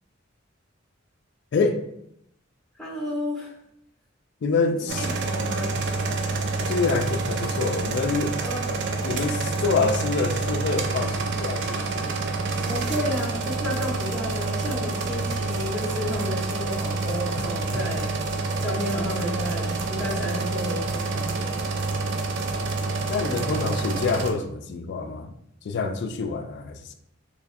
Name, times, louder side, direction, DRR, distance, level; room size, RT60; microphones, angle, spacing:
voice 1, 2.8-3.5 4.9-5.7 8.4-9.0 12.7-18.1 18.6-21.7, left 1 dB, ahead, 0.8 m, -32 dB
voice 2, 4.4-5.1 6.6-8.4 9.0-12.1 17.3-17.5 17.9-18.0 23.1-25.3 25.6-26.9, left 4 dB, 60° left, 0.3 m, -26 dB
sound 1, 4.9-24.3, right 3 dB, 60° right, 0.5 m, -28 dB
3.0 x 2.5 x 4.0 m
head